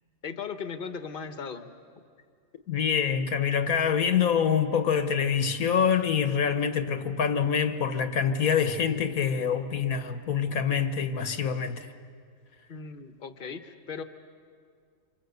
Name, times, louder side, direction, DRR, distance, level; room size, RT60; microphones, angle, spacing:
voice 1, 0.2-1.7 2.0-2.1 12.7-14.0, left 6 dB, 40° left, 1.3 m, -37 dB
voice 2, 2.7-11.9, left 7 dB, 80° left, 1.6 m, -25 dB
28.0 x 26.5 x 8.2 m
omnidirectional pair, 1.5 m